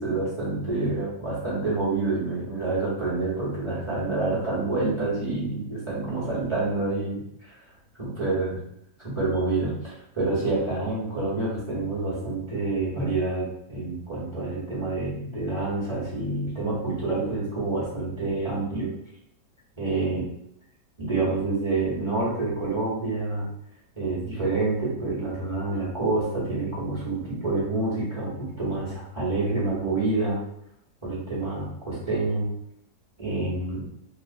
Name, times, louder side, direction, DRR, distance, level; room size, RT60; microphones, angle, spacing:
voice 1, 0.0-7.6 8.0-8.6 9.0-18.9 19.8-20.3 21.0-23.5 23.9-30.4 31.0-32.5 33.2-33.8, right 3 dB, 20° right, -9 dB, 0.9 m, -27 dB
2.9 x 2.3 x 2.5 m, 0.74 s
omnidirectional pair, 1.8 m